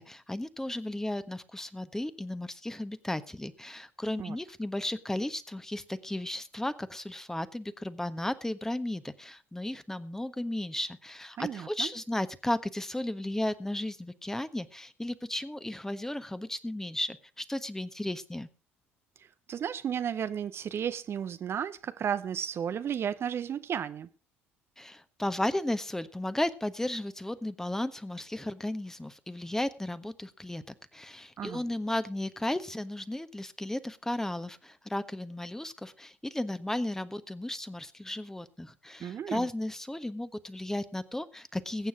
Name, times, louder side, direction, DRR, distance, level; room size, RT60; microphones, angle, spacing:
voice 1, 0.0-18.5 24.8-41.9, left 1 dB, 5° left, 1.3 m, -34 dB
voice 2, 11.4-11.9 19.2-24.1 31.4-31.6 39.0-39.5, right 8 dB, 40° right, 0.8 m, -33 dB
21.5 x 9.2 x 3.6 m
figure-of-eight pair, 55°, 6 cm